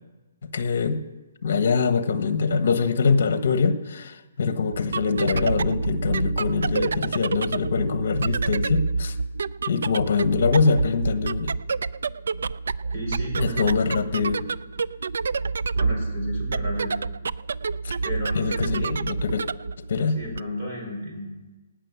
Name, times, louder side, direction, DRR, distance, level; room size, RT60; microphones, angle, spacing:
voice 1, 0.5-1.0 1.4-9.1 9.7-11.5 13.4-14.4 17.8-17.9 18.3-19.4 19.9-20.2, left 5 dB, 50° left, 10 dB, 1.3 m, -23 dB
sound 1, 4.7-20.4, right 4 dB, 70° right, 0.4 m, -28 dB
voice 2, 12.9-14.4 15.8-16.9 18.0-19.0 20.1-21.3, equal, 30° right, -2 dB, 5.4 m, -34 dB
17.5 x 6.5 x 9.6 m, 1.2 s
hypercardioid pair, 170°, 0 cm